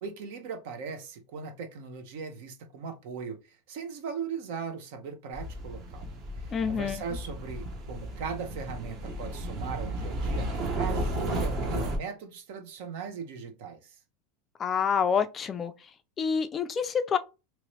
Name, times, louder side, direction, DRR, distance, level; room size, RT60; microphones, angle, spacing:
voice 1, 0.0-6.1 6.7-14.0, right 5 dB, 70° right, 0.9 m, -38 dB
sound 1, 5.3-12.0, right 1 dB, 40° right, 1.0 m, -33 dB
voice 2, 6.5-7.0 14.6-15.7 16.2-17.2, left 6 dB, 25° left, 0.4 m, -27 dB
3.0 x 3.0 x 3.1 m
supercardioid pair, 145°, 0 cm